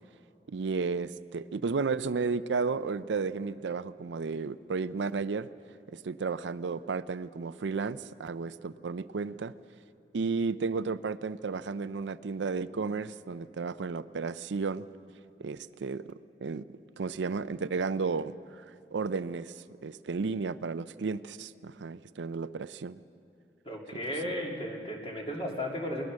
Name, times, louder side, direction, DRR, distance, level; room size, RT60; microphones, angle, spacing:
voice 1, 0.5-5.5 5.9-9.5 10.1-14.8 15.4-16.1 16.4-16.6 17.0-18.6 18.9-19.5 19.8-23.0 24.2-24.3, right 4 dB, 85° right, 14 dB, 0.5 m, -33 dB
voice 2, 23.6-26.0, left 1 dB, 30° left, -1 dB, 2.7 m, -35 dB
21.5 x 18.5 x 6.4 m, 2.6 s
head